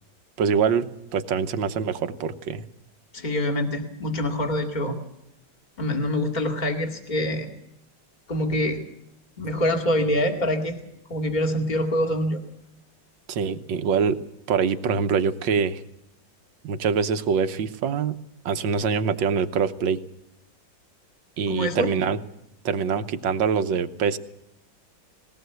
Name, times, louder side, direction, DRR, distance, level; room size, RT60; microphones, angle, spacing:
voice 1, 0.4-2.7 13.3-14.2 14.5-15.8 16.6-18.2 18.5-20.0 21.4-22.2 22.7-24.2, right 6 dB, 80° right, 10 dB, 1.8 m, -24 dB
voice 2, 3.1-5.0 5.8-7.5 8.3-8.8 9.4-10.8 11.1-12.4 21.5-21.9, left 1 dB, 25° left, 3 dB, 2.4 m, -25 dB
20.0 x 17.5 x 8.0 m, 0.83 s
omnidirectional pair, 2.0 m